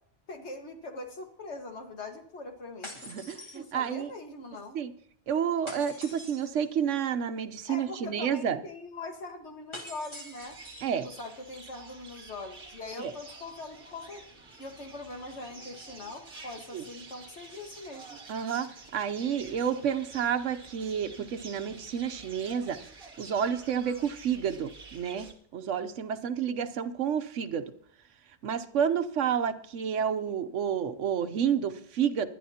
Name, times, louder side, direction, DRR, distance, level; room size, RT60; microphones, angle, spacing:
voice 1, 0.3-2.9 3.3-4.8 7.7-10.6 11.0-14.2 14.6-18.2, left 2 dB, 65° left, 4 dB, 1.9 m, -42 dB
sound 1, 2.8-4.1 5.7-6.7 9.7-10.9, left 1 dB, 25° left, 1.9 m, -45 dB
voice 2, 3.1-4.1 4.7-4.9 5.3-8.6 10.8-11.1 13.0-13.1 16.7-16.8 18.3-22.8 23.2-27.7 28.4-32.3, right 8 dB, 80° right, 10 dB, 1.1 m, -30 dB
sound 2, 10.4-25.3, right 3 dB, 50° right, 1.7 m, -49 dB
20.5 x 11.0 x 2.8 m, 0.62 s
omnidirectional pair, 1.2 m